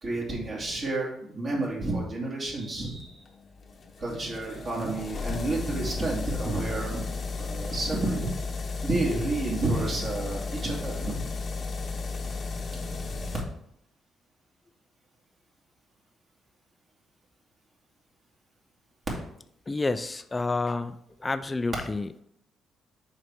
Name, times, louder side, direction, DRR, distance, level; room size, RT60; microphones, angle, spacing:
voice 1, 0.0-3.2 4.0-7.0 7.4-8.2 8.8-11.3 12.9-13.3, right 2 dB, 45° right, -3 dB, 2.1 m, -30 dB
sound 1, 3.1-13.4, left 4 dB, 45° left, 0.9 m, -34 dB
voice 2, 19.7-22.2, left 3 dB, 20° left, 11 dB, 0.4 m, -29 dB
6.3 x 4.3 x 4.4 m, 0.72 s
cardioid pair, 90°, 0 cm